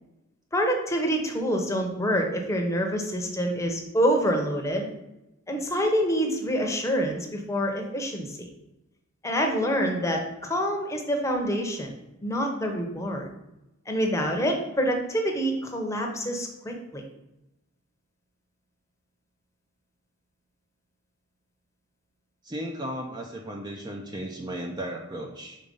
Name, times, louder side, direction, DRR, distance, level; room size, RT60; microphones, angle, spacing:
voice 1, 0.5-4.9 5.5-8.5 9.2-12.0 12.2-13.3 13.9-17.0, equal, 15° left, 2 dB, 0.8 m, -26 dB
voice 2, 22.4-25.6, right 1 dB, 20° right, 2 dB, 0.5 m, -35 dB
5.2 x 4.0 x 5.3 m, 0.92 s
head